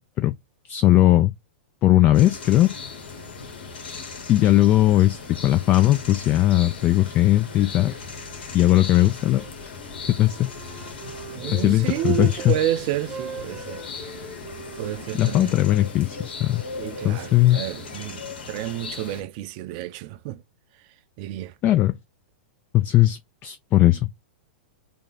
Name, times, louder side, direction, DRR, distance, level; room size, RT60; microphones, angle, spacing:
voice 1, 0.7-1.3 1.8-2.7 4.3-7.9 8.5-9.7 10.2-10.5 11.5-12.5 15.2-16.6 17.0-17.6 21.6-21.9 22.7-24.1, left 15 dB, 30° left, 0.3 m, -19 dB
sound 1, 2.1-19.2, left 4 dB, 70° left, 1.2 m, -38 dB
Wind instrument woodwind instrument, 9.2-12.6 12.9-16.9, right 4 dB, 20° right, 0.8 m, -42 dB
voice 2, 11.3-13.9 14.8-15.5 16.8-20.4 21.2-21.5, right 13 dB, 50° right, 0.5 m, -30 dB
3.4 x 2.1 x 3.9 m
hypercardioid pair, 115°, 5 cm